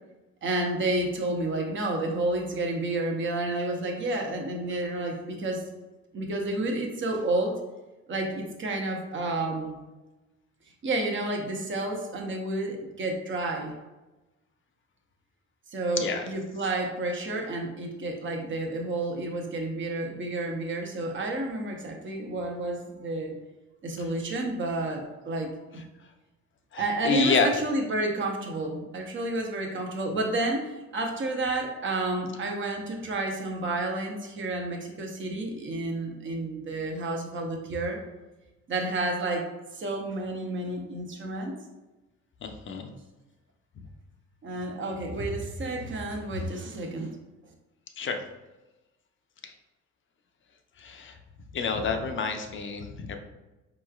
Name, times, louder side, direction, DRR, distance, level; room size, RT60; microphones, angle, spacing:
voice 1, 0.4-5.6 6.1-7.6 8.1-9.8 10.8-13.7 15.7-23.3 23.8-25.8 26.8-38.0 38.7-41.5 44.4-47.1, right 2 dB, 40° right, 2 dB, 0.7 m, -30 dB
voice 2, 16.0-16.3 26.7-27.5 42.4-42.9 43.8-43.9 48.0-48.2 49.4-49.5 50.8-51.1 51.5-53.2, left 5 dB, 40° left, 5 dB, 0.6 m, -28 dB
4.6 x 3.0 x 2.4 m, 1.1 s
cardioid pair, 90°, 30 cm